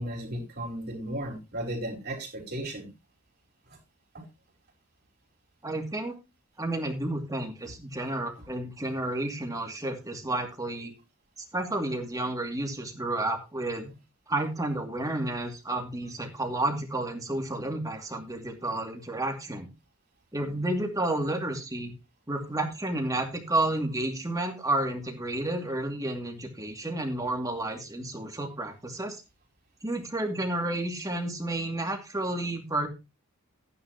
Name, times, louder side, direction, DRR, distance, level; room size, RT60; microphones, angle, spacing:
voice 1, 0.0-2.9 3.7-3.8 4.1-4.2, right 1 dB, 45° right, 0 dB, 4.4 m, -35 dB
voice 2, 5.6-6.2 6.6-10.9 11.5-13.9 14.3-19.7 20.3-21.9 22.3-29.2 29.8-32.9, right 1 dB, 15° right, 3 dB, 2.5 m, -31 dB
14.5 x 10.0 x 3.0 m, 0.26 s
head